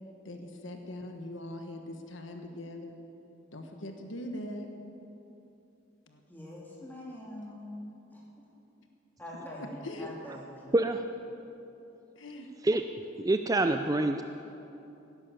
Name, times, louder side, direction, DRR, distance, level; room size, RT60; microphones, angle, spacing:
voice 1, 0.2-3.0 3.5-4.7 6.1-6.2 9.8-10.1 12.1-12.5, left 1 dB, 75° left, 4 dB, 1.5 m, -41 dB
voice 2, 6.3-8.2 9.2-10.7, left 1 dB, 10° left, -5 dB, 3.3 m, -44 dB
voice 3, 10.7-11.0 12.6-12.8 13.2-14.2, right 2 dB, 20° right, 7 dB, 0.4 m, -26 dB
18.0 x 10.5 x 7.3 m, 2.9 s
head